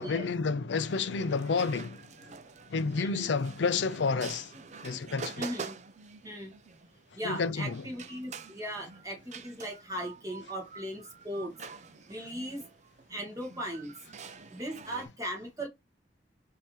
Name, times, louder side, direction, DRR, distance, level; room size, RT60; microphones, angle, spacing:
voice 1, 0.0-2.0 2.7-4.5 4.8-5.4 7.2-7.8, left 4 dB, 80° left, 0.5 m, -30 dB
sound 1, 0.8-15.1, right 5 dB, 40° right, 0.5 m, -47 dB
voice 2, 3.0-3.3 5.4-5.8 6.2-6.5 7.1-11.5 12.1-12.6 13.1-13.9 14.5-15.7, equal, 20° right, 1.4 m, -38 dB
5.4 x 2.8 x 3.1 m
head